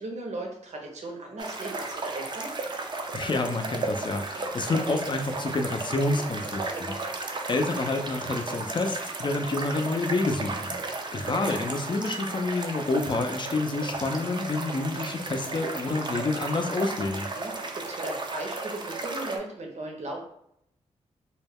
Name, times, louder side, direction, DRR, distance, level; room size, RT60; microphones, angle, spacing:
voice 1, 0.0-2.5 6.6-7.1 17.1-20.2, right 2 dB, 60° right, 0 dB, 0.8 m, -37 dB
sound 1, 1.4-19.4, right 3 dB, 35° right, 0.4 m, -34 dB
voice 2, 3.1-6.9 7.5-10.8 11.1-17.3, left 2 dB, 35° left, 5 dB, 0.5 m, -28 dB
2.2 x 2.1 x 3.4 m, 0.75 s
cardioid pair, 60°, 13 cm